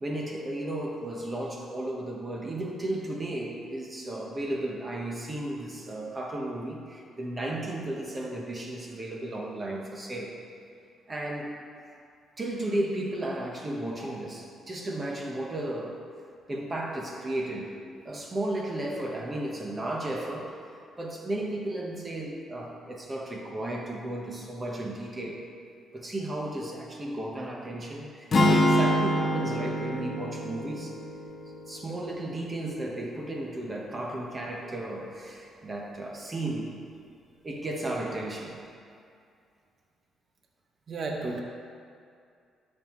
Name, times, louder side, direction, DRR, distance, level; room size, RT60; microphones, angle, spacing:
voice 1, 0.0-10.3 11.1-11.5 12.4-16.0 16.5-17.7 18.0-20.6 21.0-25.5 25.9-30.9 31.7-36.7 37.4-38.6, right 1 dB, 30° right, -1 dB, 1.3 m, -34 dB
sound 1, 28.3-32.5, equal, 45° left, 1.1 m, -26 dB
voice 2, 40.9-41.4, right 3 dB, 50° right, 1 dB, 0.9 m, -36 dB
12.5 x 5.5 x 3.2 m, 2.4 s
cardioid pair, 90°, 0 cm